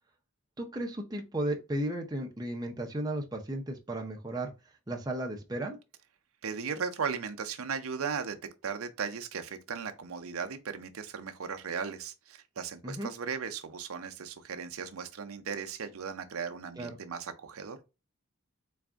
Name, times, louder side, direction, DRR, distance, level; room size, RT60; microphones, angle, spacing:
voice 1, 0.6-4.5 4.9-5.8 12.8-13.1 16.8-17.0, right 1 dB, 15° right, 0.6 m, -34 dB
voice 2, 6.4-8.4 8.6-17.8, right 6 dB, 75° right, 0.6 m, -37 dB
4.0 x 2.5 x 3.4 m
head